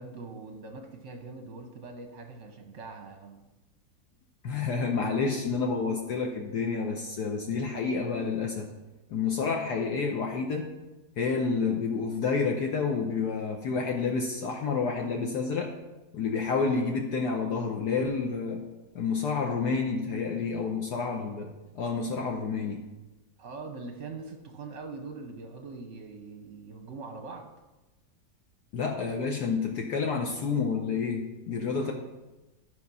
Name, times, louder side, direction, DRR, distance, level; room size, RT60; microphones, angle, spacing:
voice 1, 0.0-3.4 23.4-27.5, right 3 dB, 50° right, 4 dB, 1.0 m, -42 dB
voice 2, 4.4-8.7 9.1-10.7 11.2-15.7 16.1-18.6 18.9-22.8 28.7-31.9, left 5 dB, 65° left, 1 dB, 1.3 m, -29 dB
13.0 x 4.8 x 5.4 m, 1.1 s
omnidirectional pair, 2.0 m